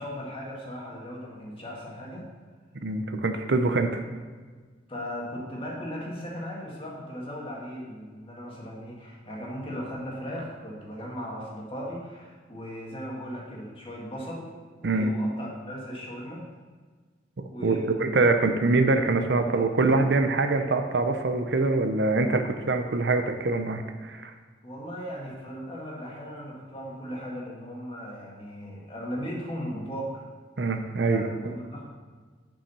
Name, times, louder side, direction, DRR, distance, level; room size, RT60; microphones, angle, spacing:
voice 1, 0.0-2.3 4.9-14.5 14.8-16.4 17.5-18.2 18.6-18.8 19.4-19.7 24.6-30.2 31.1-31.8, equal, 30° left, -3 dB, 1.9 m, -37 dB
voice 2, 2.7-4.0 14.8-15.1 17.4-24.3 30.6-31.5, right 3 dB, 65° right, 7 dB, 0.6 m, -24 dB
7.0 x 6.0 x 5.6 m, 1.5 s
head